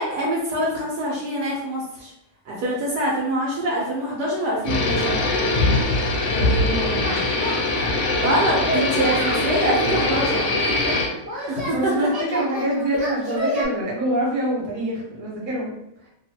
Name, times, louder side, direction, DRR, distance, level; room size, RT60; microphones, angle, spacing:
voice 1, 0.0-2.1 2.5-5.3 8.2-10.5 11.5-12.1, right 1 dB, 70° right, -4 dB, 1.1 m, -25 dB
sound 1, 4.6-11.1, left 2 dB, 75° left, 1.1 m, -22 dB
voice 2, 6.4-7.2 10.6-10.9 11.3-15.7, right 1 dB, 35° right, -5 dB, 0.9 m, -26 dB
Singing, 7.0-7.9 8.2-9.5 10.0-11.7 12.1-13.6, left 1 dB, 90° right, 0.3 m, -29 dB
2.9 x 2.3 x 2.7 m, 0.81 s
omnidirectional pair, 2.0 m